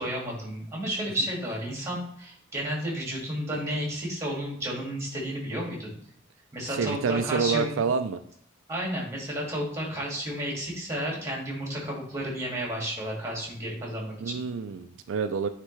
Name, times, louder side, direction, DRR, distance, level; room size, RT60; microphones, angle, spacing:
voice 1, 0.0-6.0 6.5-7.8 8.7-14.4, equal, 15° right, -3 dB, 2.1 m, -32 dB
voice 2, 6.7-8.2 14.2-15.5, right 5 dB, 80° right, 9 dB, 0.4 m, -28 dB
9.4 x 3.3 x 3.2 m, 0.64 s
head